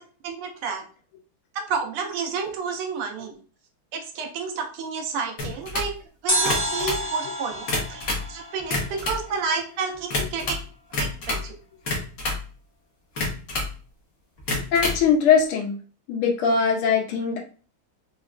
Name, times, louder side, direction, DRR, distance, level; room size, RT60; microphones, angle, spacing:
voice 1, 0.2-0.8 1.5-3.3 3.9-5.9 6.2-10.6 11.0-11.5, right 5 dB, 85° right, 4 dB, 1.5 m, -30 dB
sound 1, 5.4-5.9 6.3-7.0 7.5-8.3 8.6-9.2 10.1-10.6 10.9-11.5 11.9-12.5 13.2-13.7 14.4-15.0, left 2 dB, 50° left, 1.0 m, -28 dB
sound 2, 6.3-9.4 9.6-9.7, right 1 dB, 20° left, 1.0 m, -29 dB
voice 2, 14.7-15.8 16.1-17.4, left 6 dB, 85° left, 1 dB, 1.6 m, -21 dB
4.2 x 2.3 x 2.3 m, 0.39 s
omnidirectional pair, 2.4 m